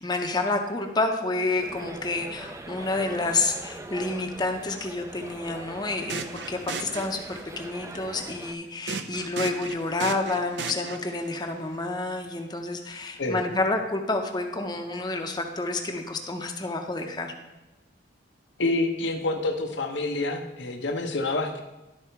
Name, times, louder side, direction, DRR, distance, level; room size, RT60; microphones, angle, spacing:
voice 1, 0.0-17.3, left 2 dB, 25° left, 3 dB, 0.6 m, -29 dB
sound 1, 1.6-8.5, right 2 dB, 15° right, 0.4 m, -42 dB
sound 2, 5.9-7.6 8.9-11.3, right 5 dB, 75° right, 0.5 m, -36 dB
voice 2, 18.6-21.6, left 2 dB, 85° left, 3 dB, 1.0 m, -27 dB
12.0 x 4.0 x 4.6 m, 1.0 s
head